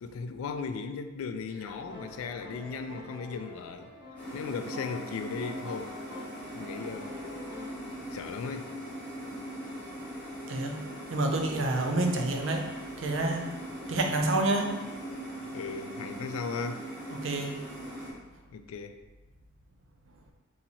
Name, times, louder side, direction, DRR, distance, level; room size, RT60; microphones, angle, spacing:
voice 1, 0.0-3.9 4.3-5.9 6.5-7.2 8.1-8.8 11.8-11.9 15.5-16.8 18.5-18.9, left 5 dB, 80° left, 8 dB, 0.3 m, -37 dB
sound 1, 1.7-7.9, left 2 dB, 20° right, 0.6 m, -46 dB
sound 2, 4.2-18.1, right 1 dB, 10° left, 0.9 m, -41 dB
voice 2, 11.1-12.7 13.0-13.4 13.9-14.7 17.1-17.5, right 2 dB, 65° right, 3 dB, 0.5 m, -28 dB
2.8 x 2.6 x 4.1 m, 1.2 s
head